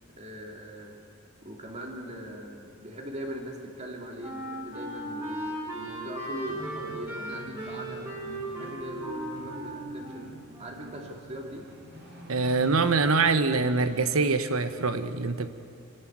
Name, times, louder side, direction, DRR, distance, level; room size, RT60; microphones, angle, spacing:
voice 1, 0.2-1.0 1.4-8.0 8.5-10.3 10.6-11.7, equal, 30° right, 0 dB, 3.0 m, -40 dB
Wind instrument woodwind instrument, 3.8-11.0, right 1 dB, 15° right, 5.6 m, -37 dB
sound 1, 6.5-14.5, equal, 60° right, 5.3 m, -46 dB
voice 2, 12.3-15.5, right 3 dB, 85° right, 10 dB, 1.1 m, -24 dB
27.0 x 12.5 x 9.4 m, 2.4 s
head